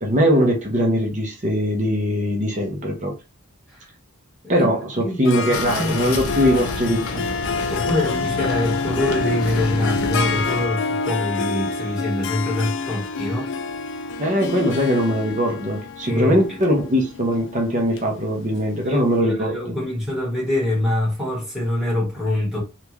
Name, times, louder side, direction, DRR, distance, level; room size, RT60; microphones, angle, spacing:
voice 1, 0.0-3.1 4.5-7.3 14.2-19.7, equal, 35° right, 0.7 m, -21 dB
voice 2, 5.0-6.1 7.7-13.5 16.0-16.4 18.8-22.6, left 1 dB, 5° right, 1.6 m, -25 dB
Harp, 5.2-18.8, left 4 dB, 60° left, 0.4 m, -27 dB
sound 1, 5.5-10.7, left 3 dB, 90° left, 0.7 m, -30 dB
3.5 x 2.4 x 2.9 m
head